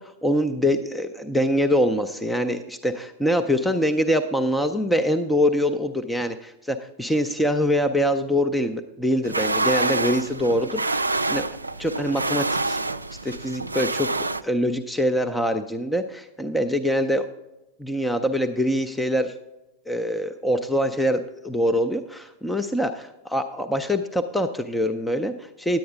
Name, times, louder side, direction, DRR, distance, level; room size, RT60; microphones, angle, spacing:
voice 1, 0.0-11.5 11.8-12.8 13.2-14.1 14.4-17.3 17.8-19.3 19.9-25.8, equal, 5° left, 6 dB, 0.5 m, -24 dB
sound 1, 9.2-14.4, right 2 dB, 80° right, 0.3 m, -26 dB
10.5 x 8.5 x 3.8 m, 0.96 s
figure-of-eight pair, 90°, 0 cm